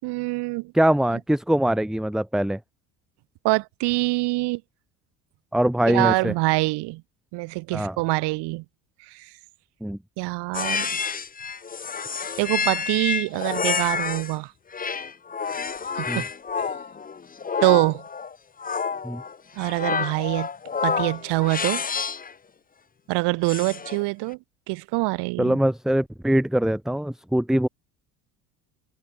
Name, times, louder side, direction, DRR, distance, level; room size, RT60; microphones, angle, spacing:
voice 1, 0.0-0.7 3.4-4.6 5.9-7.0 7.3-8.6 9.1-9.3 10.2-11.0 12.4-14.5 16.0-16.2 17.6-18.0 19.6-20.5 20.8-21.8 23.1-24.4 24.7-25.6, right 23 dB, 75° right, 4.1 m, -24 dB
voice 2, 0.7-2.6 5.5-6.3 7.7-8.0 9.8-10.0 16.1-16.2 19.0-19.2 25.4-27.7, right 1 dB, ahead, 1.1 m, -22 dB
sound 1, 10.5-14.3 14.7-22.3 23.5-24.0, left 6 dB, 20° left, 1.4 m, -29 dB
cardioid pair, 115°, 41 cm